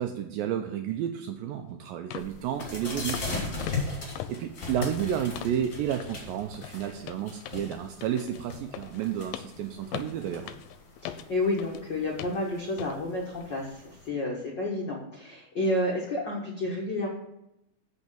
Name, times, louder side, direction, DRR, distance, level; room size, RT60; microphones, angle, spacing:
voice 1, 0.0-10.5, right 10 dB, 80° right, 6 dB, 2.2 m, -32 dB
sound 1, 1.5-1.6 2.1-2.3 2.6-2.8 3.1-3.4 3.6-5.7 6.0-6.2 6.5-11.8 12.2-12.4 12.8-13.0 13.4-13.6, left 11 dB, 80° left, 2.2 m, -41 dB
sound 2, 2.2-14.1, left 3 dB, 25° left, 2.4 m, -39 dB
voice 2, 3.5-3.8 11.0-17.1, left 1 dB, 55° left, -2 dB, 1.2 m, -30 dB
8.2 x 5.7 x 6.7 m, 0.84 s
omnidirectional pair, 4.3 m